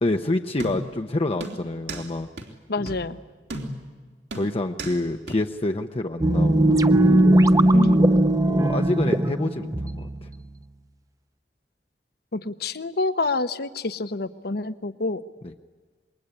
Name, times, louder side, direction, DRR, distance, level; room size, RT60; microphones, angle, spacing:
voice 1, 0.0-2.3 2.8-2.9 4.3-7.5 8.4-10.3, left 2 dB, 35° left, 5 dB, 0.7 m, -28 dB
sound 1, 0.6-1.0 1.4-2.1 2.4-2.5 2.9-3.1 3.5-3.9 4.3-5.0 5.3-5.4, right 2 dB, 80° right, 3.3 m, -35 dB
voice 2, 2.7-3.2 7.7-8.0 12.3-15.2, left 3 dB, 60° left, 12 dB, 1.0 m, -27 dB
sound 2, 6.2-10.5, right 1 dB, 20° right, 0.7 m, -19 dB
26.5 x 22.0 x 9.9 m, 1.4 s
head